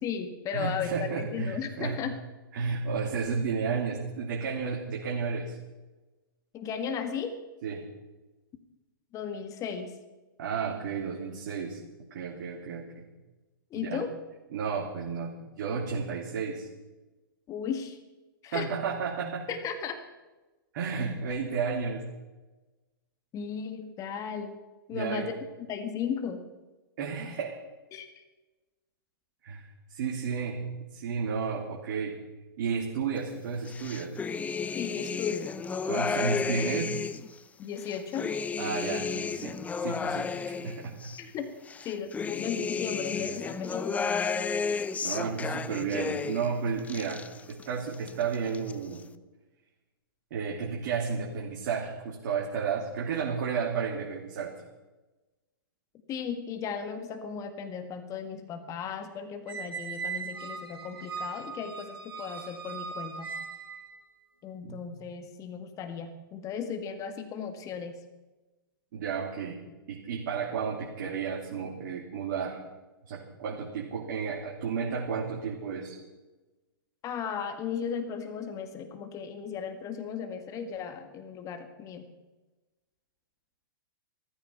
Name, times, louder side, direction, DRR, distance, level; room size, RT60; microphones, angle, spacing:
voice 1, 0.0-2.1 6.5-7.3 9.1-9.9 13.7-14.1 17.5-18.0 18.4-18.7 19.5-20.0 23.3-24.6 24.9-25.3 25.7-26.4 27.9-28.1 34.7-35.5 37.6-38.3 41.2-41.5 41.9-44.2 56.1-63.3 64.4-67.9 77.0-82.0, left 7 dB, 25° left, 7 dB, 1.9 m, -36 dB
voice 2, 0.5-2.0 2.5-5.6 7.6-7.8 10.4-11.8 12.1-13.0 13.7-14.0 14.5-16.7 18.5-19.5 20.7-22.0 24.9-25.3 27.0-27.6 29.4-29.6 29.9-32.1 32.6-34.1 35.9-36.9 38.6-41.0 45.0-49.0 50.3-54.5 64.6-64.8 68.9-69.6 69.9-72.6 73.1-76.0, right 5 dB, 55° right, -1 dB, 2.9 m, -32 dB
sound 1, 33.7-37.3 37.8-41.2 41.7-46.5 46.8-47.7 47.9-48.7, left 5 dB, 10° left, 0.6 m, -32 dB
Squeak, 59.5-64.0, right 5 dB, 80° right, 3.1 m, -39 dB
16.5 x 14.5 x 5.8 m, 1.1 s
figure-of-eight pair, 115°, 12 cm